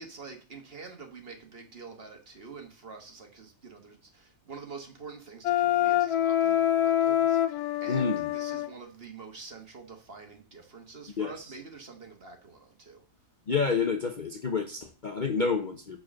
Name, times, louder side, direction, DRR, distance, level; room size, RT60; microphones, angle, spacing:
voice 1, 0.0-13.0, right 4 dB, 45° right, 1.5 m, -46 dB
Wind instrument woodwind instrument, 5.4-8.7, left 12 dB, 90° left, 1.1 m, -25 dB
voice 2, 7.9-8.2 11.2-11.3 13.5-16.0, left 5 dB, 45° left, 0.7 m, -28 dB
6.5 x 4.8 x 6.3 m
omnidirectional pair, 1.6 m